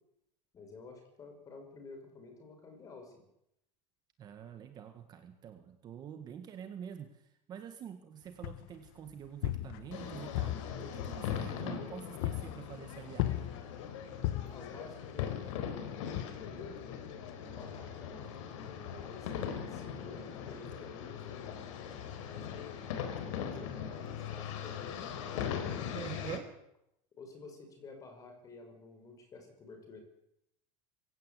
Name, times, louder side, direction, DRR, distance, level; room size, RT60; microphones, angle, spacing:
voice 1, 0.5-3.2 14.4-21.7 22.2-22.7 23.2-25.2 27.2-30.0, left 3 dB, 20° left, 5 dB, 5.7 m, -51 dB
voice 2, 4.2-13.6 25.9-26.5, right 8 dB, 25° right, 7 dB, 1.8 m, -46 dB
sound 1, 8.4-8.9 9.2-10.1 10.3-11.8 12.2-12.7 13.2-13.8 14.2-14.7 15.2-15.7 16.1-16.2, left 14 dB, 50° left, 1.1 m, -36 dB
sound 2, 9.9-26.4, left 8 dB, 70° left, 4.5 m, -40 dB
25.0 x 16.0 x 8.4 m, 0.79 s
supercardioid pair, 175°, 17 cm